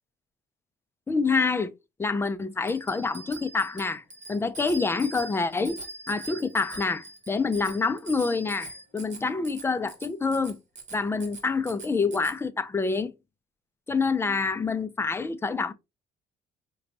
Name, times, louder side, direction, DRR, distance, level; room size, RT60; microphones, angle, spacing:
voice 1, 1.1-1.7 2.0-4.0 4.3-5.8 6.1-10.6 10.9-13.1 13.9-15.7, left 4 dB, 15° left, 0.4 m, -27 dB
Bicycle bell, 2.7-12.4, right 2 dB, 45° right, 1.3 m, -42 dB
5.0 x 2.2 x 2.8 m
cardioid pair, 110°, 17 cm